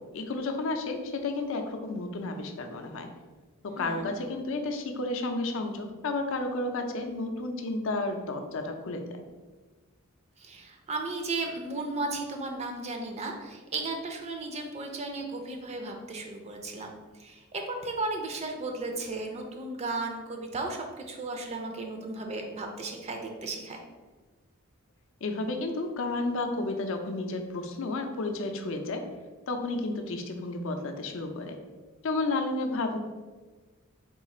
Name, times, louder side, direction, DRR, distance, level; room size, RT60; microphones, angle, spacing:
voice 1, 0.0-3.1 3.6-9.2 25.2-29.0 29.5-31.6 32.0-33.0, left 2 dB, 65° left, 5 dB, 0.5 m, -32 dB
voice 2, 3.8-4.1 10.4-23.8, right 2 dB, 30° right, 3 dB, 0.4 m, -35 dB
3.7 x 2.4 x 4.1 m, 1.3 s
head